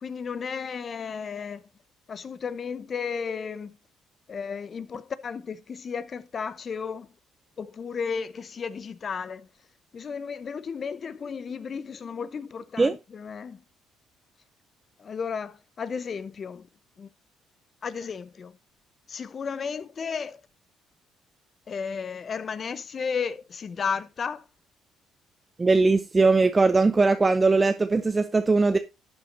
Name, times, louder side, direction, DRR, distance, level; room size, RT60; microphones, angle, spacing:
voice 1, 0.0-1.6 2.1-3.8 4.3-7.1 7.6-9.5 9.9-13.6 15.0-16.7 17.0-17.1 17.8-18.5 19.1-20.4 21.7-24.4, left 6 dB, 45° left, 0.8 m, -33 dB
voice 2, 25.6-28.8, right 3 dB, 25° right, 0.6 m, -20 dB
12.0 x 8.0 x 2.7 m
supercardioid pair, 75°, 0 cm